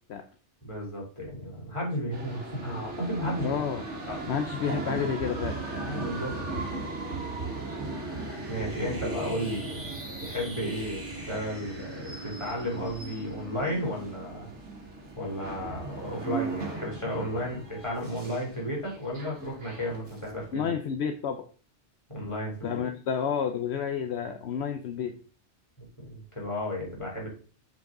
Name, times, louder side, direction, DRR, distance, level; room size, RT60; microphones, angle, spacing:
voice 1, 0.6-3.6 4.1-4.2 5.8-6.3 8.5-14.5 15.2-20.7 22.1-22.8 26.0-27.3, equal, 25° left, -3 dB, 3.3 m, -33 dB
sound 1, 2.1-20.5, right 3 dB, 75° right, 1.9 m, -37 dB
voice 2, 3.4-3.8 4.3-5.6 20.5-21.5 22.6-25.2, left 7 dB, 70° left, 8 dB, 0.9 m, -30 dB
sound 2, 6.4-14.5, right 1 dB, 10° right, 1.9 m, -47 dB
7.8 x 5.3 x 3.7 m, 0.38 s
omnidirectional pair, 1.2 m